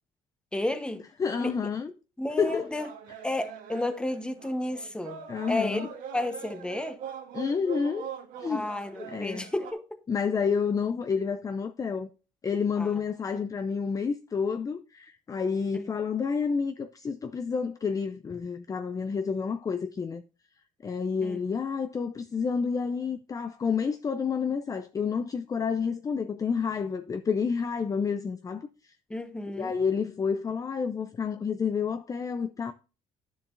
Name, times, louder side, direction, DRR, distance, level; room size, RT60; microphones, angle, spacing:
voice 1, 0.5-1.0 1.4-1.5 2.2-2.9 3.2-5.2 5.5-5.9 6.1-7.0 8.4-9.8 12.8-12.9 15.7-15.9 21.2-21.4 29.1-29.7, left 1 dB, 5° left, 1.0 m, -32 dB
voice 2, 1.2-1.9 2.4-2.7 5.3-5.9 7.3-8.1 8.4-8.7 9.0-9.5 10.1-12.1 12.4-20.2 20.8-28.9 29.5-32.7, left 6 dB, 25° left, 0.5 m, -29 dB
sound 1, 2.3-9.7, right 8 dB, 80° right, 1.6 m, -42 dB
9.8 x 7.0 x 2.5 m
cardioid pair, 110°, 14 cm